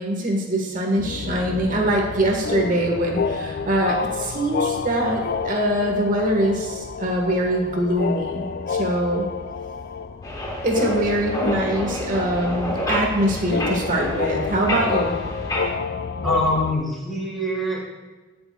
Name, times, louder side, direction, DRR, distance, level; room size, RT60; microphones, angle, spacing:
voice 1, 0.0-9.3 10.6-15.1, right 1 dB, 40° right, 1 dB, 1.4 m, -23 dB
sound 1, 1.0-16.7, left 5 dB, 50° left, 0.3 m, -29 dB
sound 2, 10.2-15.7, left 1 dB, 20° left, 1.2 m, -29 dB
voice 2, 16.2-17.8, equal, ahead, -4 dB, 1.8 m, -24 dB
16.5 x 7.0 x 2.3 m, 1.3 s
head